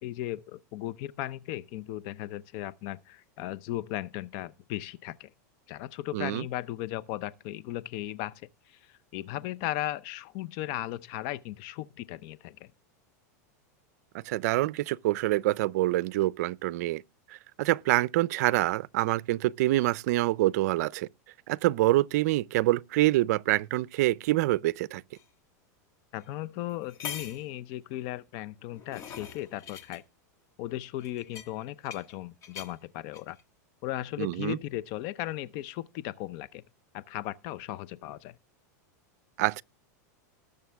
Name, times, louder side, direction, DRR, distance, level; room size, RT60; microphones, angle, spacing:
voice 1, 0.0-5.3 5.7-8.4 8.7-12.7 26.1-30.0 30.6-33.4 33.8-36.6 36.9-38.3, left 14 dB, 50° left, 0.6 m, -36 dB
voice 2, 6.1-6.4 14.1-17.0 17.6-21.1 21.5-25.0 34.2-34.6 39.4-39.6, right 17 dB, 65° right, 0.5 m, -26 dB
sound 1, 25.2-25.3 26.2-26.3 26.7-27.5 28.5-30.0 31.0-32.1 32.4-32.7 33.1-33.4, left 8 dB, 35° left, 1.5 m, -43 dB
19.5 x 6.7 x 3.4 m
supercardioid pair, 130°, 9 cm